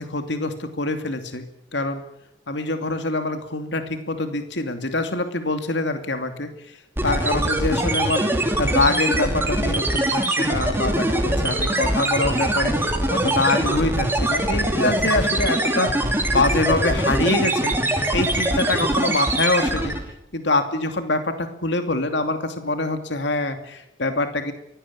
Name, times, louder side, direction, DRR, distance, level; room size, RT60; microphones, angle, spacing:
voice 1, 0.0-1.4 1.7-2.0 2.5-6.8 7.0-8.2 8.6-19.9 20.3-24.5, left 2 dB, 65° left, 7 dB, 2.7 m, -25 dB
sound 1, 7.0-20.1, right 1 dB, 10° right, 3.1 m, -22 dB
23.5 x 17.5 x 8.7 m, 0.78 s
head